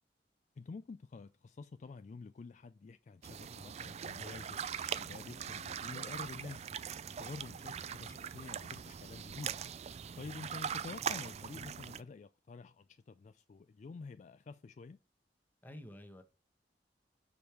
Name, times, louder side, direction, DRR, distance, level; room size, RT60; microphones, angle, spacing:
voice 1, 0.6-4.6 5.0-6.7 7.2-9.9 10.2-15.0, left 4 dB, 45° left, 0.3 m, -49 dB
sound 1, 3.2-12.0, right 8 dB, 40° right, 0.4 m, -41 dB
voice 2, 15.6-16.2, left 1 dB, 10° left, 1.1 m, -51 dB
6.3 x 5.2 x 4.4 m
head